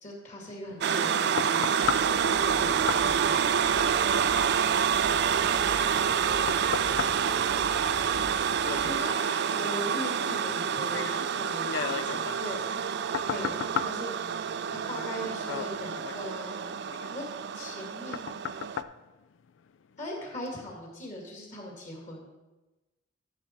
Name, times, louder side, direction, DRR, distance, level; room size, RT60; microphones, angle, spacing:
voice 1, 0.0-1.7 2.2-3.4 8.8-9.1 9.5-12.7 13.3-14.5 14.9-16.8 17.1-17.2 17.5-18.4 20.0-22.3, left 1 dB, 40° left, -1 dB, 2.2 m, -40 dB
sound 1, 0.7-20.0 20.5-20.6, left 7 dB, 85° left, 0.4 m, -39 dB
sound 2, 0.8-18.8, right 7 dB, 60° right, 0.4 m, -28 dB
sound 3, 1.8-8.9, equal, 10° left, 1.2 m, -45 dB
voice 2, 5.5-8.3, right 1 dB, 20° right, 5 dB, 0.8 m, -49 dB
12.5 x 6.0 x 4.5 m, 1.1 s
head